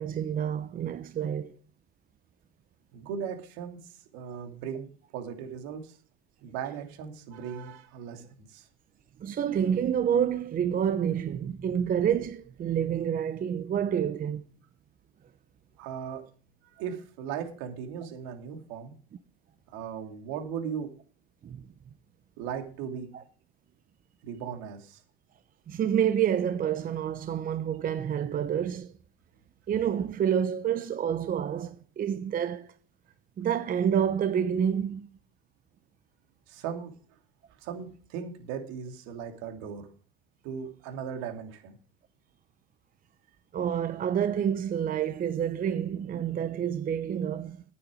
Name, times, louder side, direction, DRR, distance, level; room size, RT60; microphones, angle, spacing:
voice 1, 0.0-1.6 9.2-14.4 21.4-21.7 23.1-23.2 25.7-28.9 29.7-32.7 33.4-35.1 43.5-47.6, right 8 dB, 30° right, 0.8 m, -28 dB
voice 2, 2.9-3.8 4.1-4.9 5.1-6.0 6.4-8.6 15.8-16.2 16.8-18.9 19.7-20.9 22.4-23.1 24.2-25.0 36.5-36.9 37.6-39.9 40.4-41.8, right 7 dB, 65° right, 2.9 m, -37 dB
10.5 x 9.3 x 5.0 m
hypercardioid pair, 95°, 30 cm